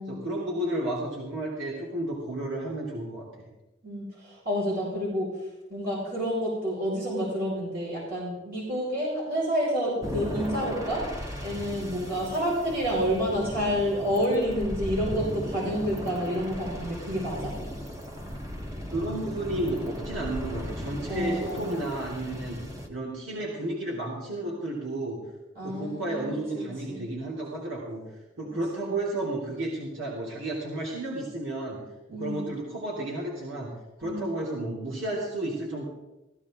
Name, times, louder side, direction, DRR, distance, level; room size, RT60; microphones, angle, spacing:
voice 1, 0.1-3.3 18.9-22.6 22.9-25.2 25.6-28.0 28.4-31.8 32.1-33.7 34.0-35.8, right 1 dB, 85° right, -4 dB, 3.3 m, -32 dB
voice 2, 3.8-5.3 5.7-11.0 11.4-17.5 21.1-21.8 25.5-26.3 26.5-27.0 28.8-29.0 32.1-32.5 34.0-34.3, equal, 50° right, -5 dB, 5.6 m, -29 dB
sound 1, 10.0-22.9, equal, 15° right, 1.3 m, -36 dB
16.0 x 15.0 x 3.8 m, 0.98 s
head